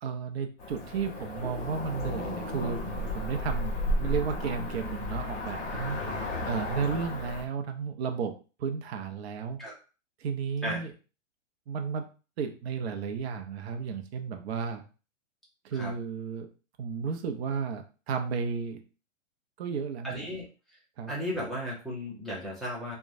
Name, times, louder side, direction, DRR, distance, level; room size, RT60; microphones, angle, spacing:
voice 1, 0.0-6.0 6.5-8.3 8.6-9.6 10.2-10.9 11.7-12.1 12.4-14.8 15.6-16.5 16.8-18.8 19.6-20.3 21.0-21.1, right 6 dB, 55° right, 5 dB, 0.6 m, -33 dB
Cricket / Motor vehicle (road), 0.6-7.5, left 1 dB, 30° left, 1.2 m, -33 dB
voice 2, 20.0-20.4 21.1-23.0, equal, ahead, -6 dB, 0.6 m, -35 dB
3.0 x 2.2 x 2.5 m, 0.35 s
hypercardioid pair, 135°, 38 cm